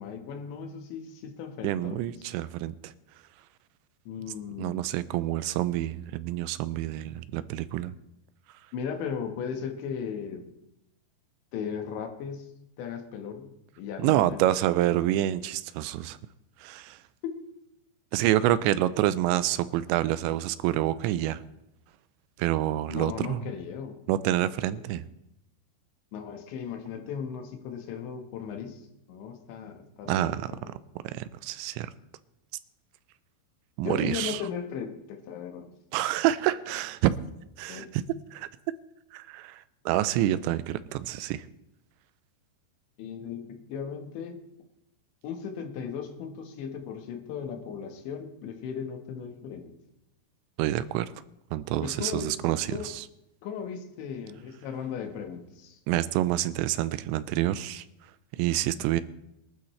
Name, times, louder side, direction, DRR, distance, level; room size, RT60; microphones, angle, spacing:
voice 1, 0.0-2.1 4.1-4.9 8.7-10.4 11.5-12.5 12.8-13.5 13.8-15.0 17.2-17.3 22.9-24.0 24.7-24.9 26.1-28.8 29.1-30.4 33.8-35.7 37.7-37.9 43.0-44.4 45.2-49.7 51.8-52.9 53.4-55.8, left 7 dB, 85° left, 5 dB, 3.7 m, -37 dB
voice 2, 1.6-2.9 4.6-7.9 14.0-16.2 16.6-17.0 18.1-21.4 22.4-23.4 24.1-25.1 30.1-30.5 31.0-31.9 33.8-34.4 35.9-37.2 37.6-37.9 38.3-38.5 39.1-41.5 50.6-51.1 51.5-53.0 55.9-57.8 58.3-59.0, right 13 dB, 85° right, 14 dB, 2.9 m, -27 dB
23.0 x 12.5 x 3.2 m, 0.84 s
omnidirectional pair, 5.1 m